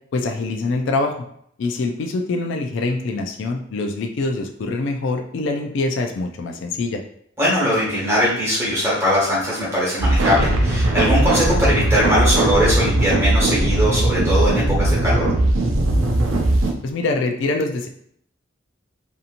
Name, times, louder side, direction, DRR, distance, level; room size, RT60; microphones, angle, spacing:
voice 1, 0.1-1.2 1.6-7.0 16.8-17.9, left 3 dB, 65° left, 4 dB, 0.3 m, -24 dB
voice 2, 7.4-15.3, equal, 15° right, -8 dB, 1.2 m, -20 dB
sound 1, 10.0-16.7, right 1 dB, 85° right, 0.5 m, -19 dB
2.8 x 2.6 x 2.5 m, 0.68 s
head